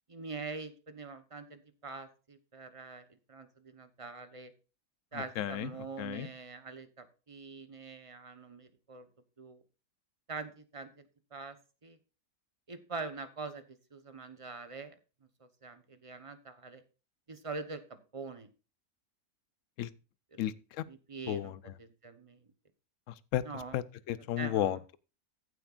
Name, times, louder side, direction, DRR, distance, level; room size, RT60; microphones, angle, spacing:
voice 1, 0.1-4.5 5.1-9.1 9.4-9.6 10.3-11.0 11.3-11.6 11.8-12.0 12.7-14.9 15.4-16.8 17.3-17.8 18.1-18.5 20.3-20.5 20.9-21.5 21.8-22.4 23.4-23.8 24.4-24.8, right 4 dB, 25° right, 0.9 m, -44 dB
voice 2, 5.1-5.7 6.0-6.3 19.8-19.9 20.4-20.8 21.3-21.6 23.3-23.4 23.7-25.0, left 12 dB, 65° left, 0.9 m, -33 dB
15.0 x 7.9 x 2.5 m
omnidirectional pair, 1.6 m